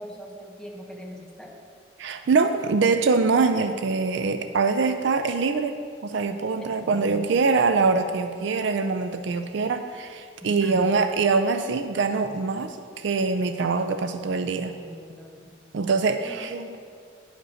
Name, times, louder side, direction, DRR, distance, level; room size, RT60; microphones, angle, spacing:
voice 1, 0.0-1.5 6.6-7.2 10.4-10.9 14.8-15.6 16.2-16.5, equal, 5° left, -2 dB, 1.0 m, -41 dB
voice 2, 2.0-5.8 6.0-14.7 15.7-16.7, right 4 dB, 60° right, 8 dB, 0.4 m, -24 dB
10.0 x 5.1 x 6.3 m, 2.3 s
head